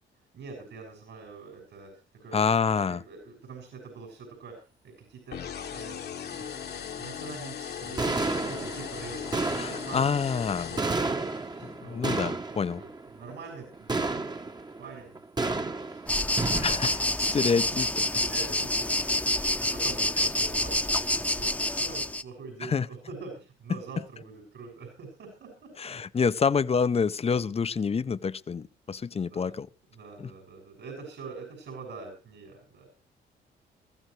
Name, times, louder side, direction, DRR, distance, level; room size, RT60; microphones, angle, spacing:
voice 1, 0.3-2.5 2.8-4.6 4.8-5.5 5.7-6.0 6.3-10.0 10.3-12.1 12.8-14.3 14.8-16.8 17.2-17.4 18.2-19.2 19.6-25.7 29.3-29.5 29.9-32.9, right 4 dB, 70° right, 6.7 m, -45 dB
voice 2, 2.3-3.0 9.5-10.7 11.6-12.8 16.6-17.0 17.3-17.9 22.6-22.9 25.8-29.7 30.2-30.3, left 5 dB, 30° left, 0.7 m, -27 dB
sound 1, 5.3-11.5, left 8 dB, 55° left, 1.3 m, -38 dB
sound 2, 5.8-5.9 6.3-6.7 7.7-7.8 8.0-19.4, right 3 dB, 20° right, 1.1 m, -33 dB
sound 3, 16.1-22.2, left 1 dB, 5° left, 0.9 m, -27 dB
22.0 x 14.5 x 3.3 m
cardioid pair, 90°, 20 cm